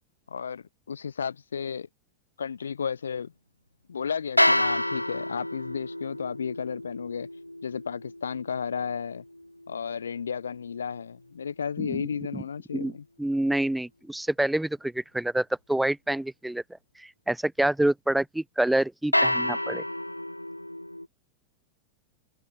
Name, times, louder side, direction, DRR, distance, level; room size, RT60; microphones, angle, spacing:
voice 1, 0.3-1.9 2.4-3.3 3.9-7.3 7.6-9.2 9.7-13.0, left 6 dB, 70° left, 1.9 m, -33 dB
sound 1, 4.4-10.5 19.1-21.1, left 1 dB, 90° left, 2.4 m, -29 dB
voice 2, 11.8-12.1 12.3-12.4 12.7-12.9 13.2-16.6 17.0-19.8, right 1 dB, 5° right, 0.4 m, -27 dB
figure-of-eight pair, 90°, 0 cm